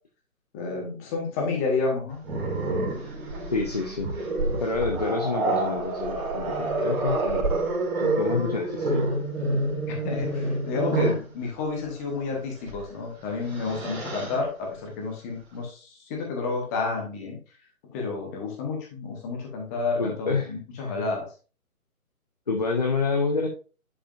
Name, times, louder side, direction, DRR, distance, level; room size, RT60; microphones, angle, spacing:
voice 1, 0.5-2.2 9.9-17.4 17.9-21.3, left 4 dB, 10° left, 0 dB, 1.1 m, -30 dB
Growling, 2.2-11.3 12.6-12.8 13.2-14.4, right 2 dB, 20° right, 2.7 m, -28 dB
voice 2, 3.5-4.1 4.6-7.5 8.0-9.0 20.0-20.5 20.8-21.1 22.5-23.5, left 4 dB, 30° left, 3 dB, 0.6 m, -28 dB
10.5 x 4.9 x 2.5 m, 0.36 s
figure-of-eight pair, 155°, 44 cm